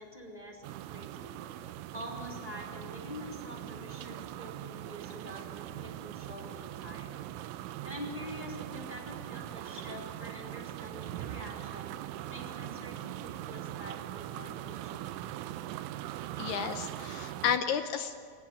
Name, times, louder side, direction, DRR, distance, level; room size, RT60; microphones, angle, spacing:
voice 1, 0.0-1.5 1.9-7.3 7.5-11.9 12.3-15.2, equal, 10° left, 0 dB, 3.4 m, -46 dB
sound 1, 0.6-17.6, right 13 dB, 85° right, 3.2 m, -41 dB
voice 2, 16.4-18.2, left 8 dB, 75° left, 8 dB, 2.5 m, -32 dB
24.5 x 18.0 x 8.9 m, 2.2 s
omnidirectional pair, 5.6 m